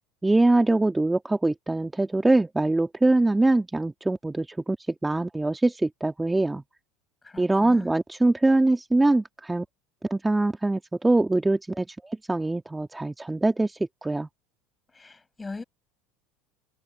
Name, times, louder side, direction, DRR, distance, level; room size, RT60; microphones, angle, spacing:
voice 1, 0.2-6.6 7.4-9.7 10.1-14.3, right 2 dB, 10° right, 1.9 m, -23 dB
voice 2, 7.2-7.9 14.9-15.6, left 3 dB, 15° left, 5.5 m, -40 dB
hypercardioid pair, 80°, 0 cm